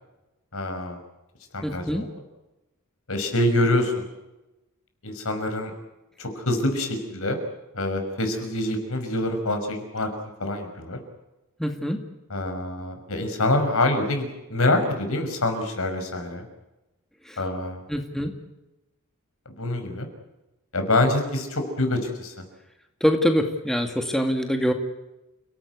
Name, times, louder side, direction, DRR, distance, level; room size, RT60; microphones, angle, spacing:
voice 1, 0.5-1.0 1.5-2.1 3.1-4.0 5.0-5.7 6.2-7.4 7.7-10.1 10.4-11.0 12.3-16.4 17.4-17.8 19.5-20.1 20.7-22.3, left 1 dB, 70° left, 6 dB, 5.9 m, -25 dB
voice 2, 1.6-2.1 11.6-12.0 17.2-17.4 17.9-18.3 23.0-24.7, equal, ahead, 4 dB, 2.2 m, -24 dB
30.0 x 18.0 x 8.3 m, 1.0 s
head